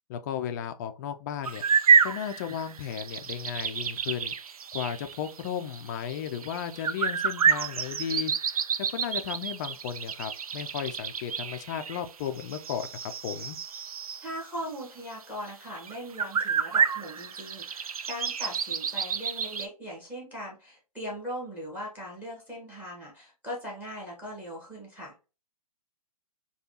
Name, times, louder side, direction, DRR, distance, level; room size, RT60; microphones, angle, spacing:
voice 1, 0.1-1.6 2.0-4.4 4.7-8.6 8.9-13.6, left 9 dB, 30° left, 0.4 m, -35 dB
sound 1, 1.4-14.3 14.8-14.9 15.4-15.5 15.8-19.7, right 6 dB, 75° right, 0.4 m, -29 dB
voice 2, 14.2-25.1, equal, 10° right, 1.3 m, -39 dB
4.9 x 2.3 x 2.8 m
figure-of-eight pair, 125°, 19 cm